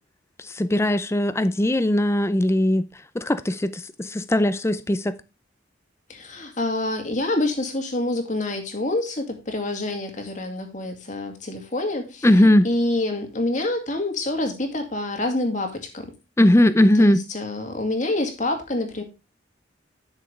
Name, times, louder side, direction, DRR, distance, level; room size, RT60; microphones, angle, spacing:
voice 1, 0.4-2.8 3.1-5.2 12.2-12.7 16.4-17.2, left 1 dB, 15° left, 0.4 m, -19 dB
voice 2, 6.1-12.3 12.6-16.1 17.0-19.0, left 2 dB, 40° left, 2.2 m, -27 dB
11.5 x 6.6 x 3.3 m
head